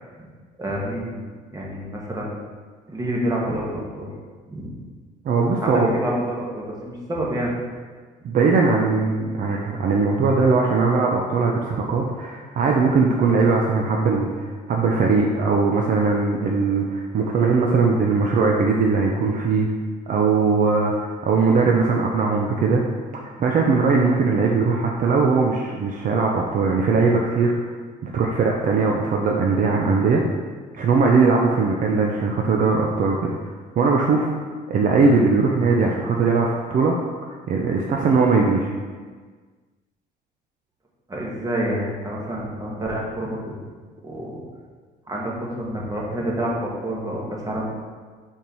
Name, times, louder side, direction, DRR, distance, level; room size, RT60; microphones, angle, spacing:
voice 1, 0.6-2.4 2.9-4.1 4.5-4.9 5.6-7.5 8.3-8.4 41.1-43.6 44.0-44.4 45.1-47.8, right 1 dB, 20° right, -3 dB, 1.4 m, -28 dB
voice 2, 5.3-5.9 8.2-19.7 20.1-22.8 23.4-27.5 28.0-30.2 30.7-34.3 34.7-36.9 37.2-38.7, right 4 dB, 55° right, 0 dB, 0.6 m, -20 dB
4.5 x 4.5 x 5.4 m, 1.5 s
cardioid pair, 110°, 17 cm